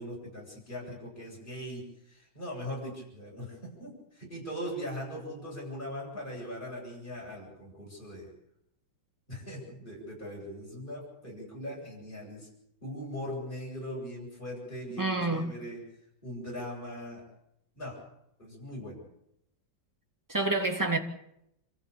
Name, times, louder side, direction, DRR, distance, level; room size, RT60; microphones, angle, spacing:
voice 1, 0.0-8.3 9.3-12.5 12.8-15.8 16.2-17.2 17.8-18.0 18.4-19.0, equal, 25° left, 8.3 m, -40 dB
voice 2, 15.0-15.5 20.3-21.0, right 2 dB, 10° right, 2.3 m, -28 dB
27.5 x 14.0 x 8.6 m
omnidirectional pair, 2.0 m